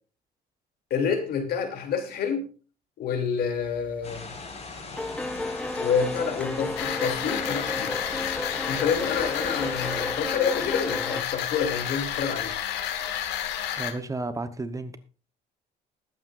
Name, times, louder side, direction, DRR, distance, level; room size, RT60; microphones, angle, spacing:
voice 1, 0.9-2.5 3.0-4.3 5.8-8.0 8.7-12.5, left 6 dB, 65° left, 3.0 m, -28 dB
sound 1, 3.6-4.0 4.3-11.2, left 2 dB, 5° left, 0.4 m, -33 dB
sound 2, 4.0-9.9, left 3 dB, 40° left, 5.3 m, -41 dB
sound 3, 6.8-13.9, left 10 dB, 85° left, 1.7 m, -31 dB
voice 2, 13.8-15.0, right 2 dB, 20° right, 1.0 m, -32 dB
20.0 x 8.7 x 2.6 m
cardioid pair, 110°, 17 cm